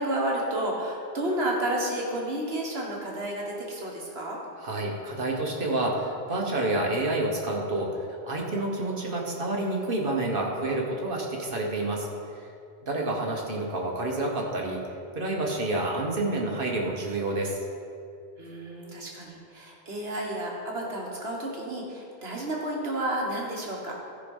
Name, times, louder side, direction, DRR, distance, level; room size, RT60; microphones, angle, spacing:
voice 1, 0.0-4.4 18.4-24.0, right 1 dB, 70° right, -2 dB, 1.7 m, -31 dB
voice 2, 4.6-12.1 12.3-12.5 12.9-14.8 15.1-17.6, right 2 dB, 55° right, 0 dB, 1.5 m, -29 dB
13.5 x 5.1 x 5.5 m, 2.5 s
omnidirectional pair, 1.1 m